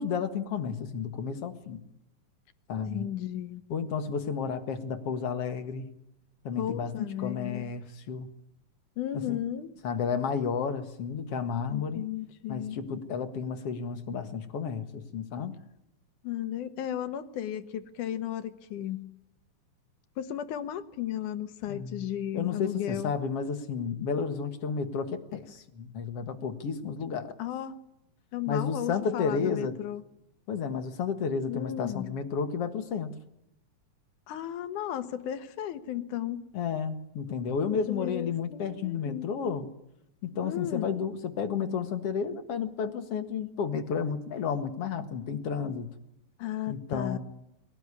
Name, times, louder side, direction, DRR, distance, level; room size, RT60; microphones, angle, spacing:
voice 1, 0.0-1.8 2.7-3.1 3.7-5.9 6.4-8.3 9.1-9.4 9.8-12.1 12.5-15.6 21.7-22.0 22.3-27.4 28.5-29.8 30.5-33.1 36.5-39.7 40.2-45.9 46.7-47.2, left 6 dB, 55° left, 9 dB, 2.5 m, -32 dB
voice 2, 2.9-3.6 6.6-7.6 9.0-9.7 11.7-12.8 16.2-19.1 20.2-23.1 27.4-27.8 28.3-30.0 31.5-32.1 34.3-36.4 37.7-39.3 40.4-41.0 46.4-47.2, left 11 dB, 90° left, 11 dB, 2.8 m, -34 dB
22.5 x 18.0 x 9.8 m, 0.87 s
omnidirectional pair, 3.5 m